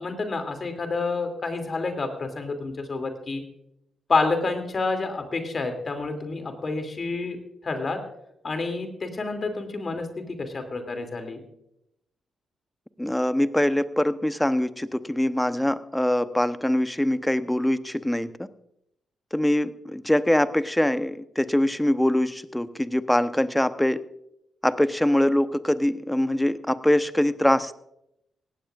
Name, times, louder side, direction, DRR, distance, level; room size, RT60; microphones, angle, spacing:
voice 1, 0.0-3.4 4.1-7.4 7.6-8.0 8.4-11.4, left 3 dB, 45° left, 6 dB, 2.6 m, -28 dB
voice 2, 13.0-18.5 19.3-24.0 24.6-27.8, left 1 dB, 10° left, 13 dB, 0.9 m, -23 dB
18.0 x 15.5 x 2.5 m, 0.79 s
hypercardioid pair, 40°, 0 cm